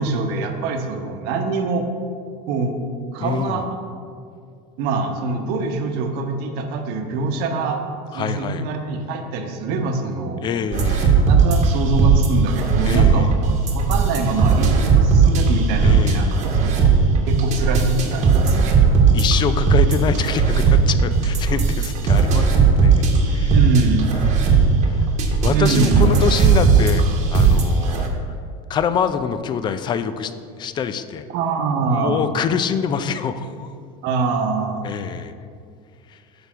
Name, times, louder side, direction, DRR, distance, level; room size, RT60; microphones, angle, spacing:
voice 1, 0.0-1.9 2.5-2.8 3.1-3.7 4.8-7.8 8.1-10.5 11.3-16.9 17.3-18.8 23.4-24.1 25.4-26.0 31.3-32.2 34.0-34.8, right 4 dB, 60° right, 4 dB, 1.0 m, -24 dB
voice 2, 3.2-3.6 8.1-8.7 10.4-11.2 12.8-13.3 15.8-16.5 19.1-23.5 24.1-25.1 25.4-27.0 27.3-28.1 28.7-30.3 30.6-31.3 31.9-33.7 34.8-35.3 36.1-36.2, left 7 dB, 25° left, 11 dB, 0.4 m, -25 dB
sound 1, 10.7-28.1, right 5 dB, 40° right, 1.1 m, -17 dB
8.8 x 3.4 x 6.0 m, 2.2 s
supercardioid pair, 135°, 18 cm